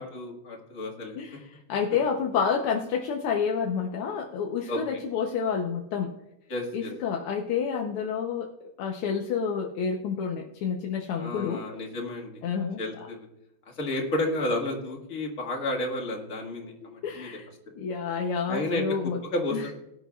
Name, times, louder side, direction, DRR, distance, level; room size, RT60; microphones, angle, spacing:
voice 1, 0.0-1.2 4.7-5.0 6.5-6.9 11.2-12.3 12.8-13.3 13.7-17.4 18.5-18.8 19.2-19.7, left 1 dB, 40° left, 0 dB, 2.1 m, -31 dB
voice 2, 1.2-6.1 6.7-8.5 8.8-11.6 12.4-13.1 17.0-17.5 17.8-19.2 19.5-19.6, left 6 dB, 90° left, 1 dB, 1.8 m, -29 dB
18.5 x 10.0 x 2.3 m, 0.89 s
omnidirectional pair, 2.4 m